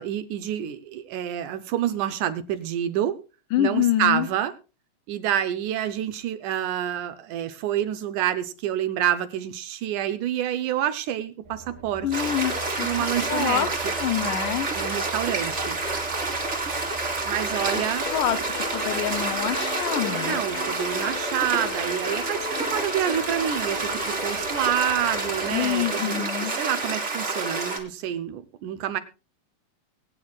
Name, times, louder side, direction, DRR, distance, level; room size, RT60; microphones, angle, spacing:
voice 1, 0.0-3.2 3.6-4.5 5.1-12.1 12.8-13.7 14.8-15.8 17.3-18.1 20.2-26.2 26.6-29.0, right 11 dB, 75° right, 11 dB, 2.0 m, -28 dB
voice 2, 3.5-4.3 12.0-14.7 17.7-17.8 18.1-20.4 25.5-26.5, left 11 dB, 75° left, 11 dB, 2.1 m, -27 dB
sound 1, 11.4-25.9, right 2 dB, 90° right, 4.6 m, -45 dB
sound 2, 12.1-27.8, right 3 dB, 25° right, 1.6 m, -29 dB
sound 3, 17.5-25.5, left 3 dB, 50° left, 0.9 m, -36 dB
22.5 x 9.1 x 2.4 m, 0.31 s
omnidirectional pair, 4.1 m